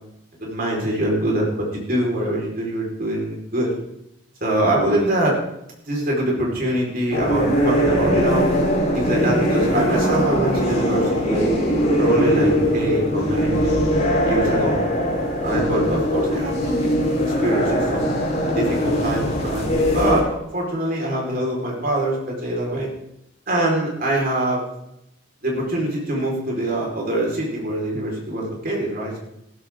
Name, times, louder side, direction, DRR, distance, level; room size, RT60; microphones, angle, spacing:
voice 1, 0.4-3.7 4.4-5.4 5.8-8.6 8.9-11.5 12.0-13.8 14.2-14.9 15.4-17.0 17.4-18.2 18.5-20.3 20.5-22.9 23.5-24.6 25.4-29.2, right 1 dB, 45° right, -2 dB, 4.9 m, -24 dB
sound 1, 7.1-20.2, equal, 35° left, 4.5 m, -21 dB
15.5 x 14.0 x 3.8 m, 0.81 s
head